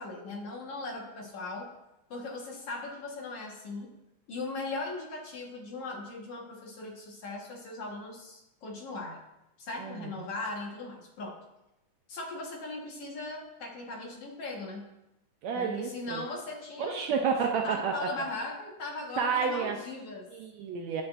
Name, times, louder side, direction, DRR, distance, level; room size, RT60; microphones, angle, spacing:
voice 1, 0.0-1.7 2.1-3.9 4.3-9.2 9.6-11.4 12.1-14.9 15.5-17.2 17.6-20.3, left 3 dB, 55° left, -1 dB, 2.2 m, -39 dB
voice 2, 9.8-10.1 15.4-16.2 16.8-17.9 19.2-19.8 20.3-21.0, right 6 dB, 75° right, 2 dB, 1.7 m, -30 dB
19.5 x 7.0 x 2.6 m, 0.91 s
omnidirectional pair, 3.7 m